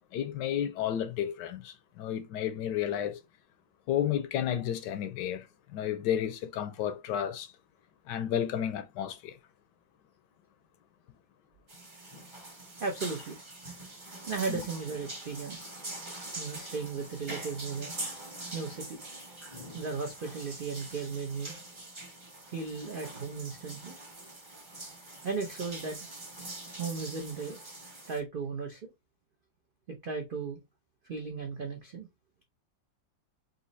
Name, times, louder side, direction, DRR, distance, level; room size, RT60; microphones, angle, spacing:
voice 1, 0.1-3.2 3.9-5.5 5.7-7.5 8.1-9.4 14.5-14.6, left 10 dB, 75° left, 1.2 m, -32 dB
sound 1, 11.7-28.2, right 2 dB, 20° right, 0.7 m, -44 dB
voice 2, 12.8-13.3 14.3-15.7 16.3-17.9 18.5-19.0 19.7-21.5 22.5-23.9 25.2-26.0 26.8-27.6 28.1-28.8 30.0-30.6 31.0-32.1, right 4 dB, 70° right, 0.5 m, -36 dB
4.1 x 2.7 x 4.0 m
omnidirectional pair, 2.0 m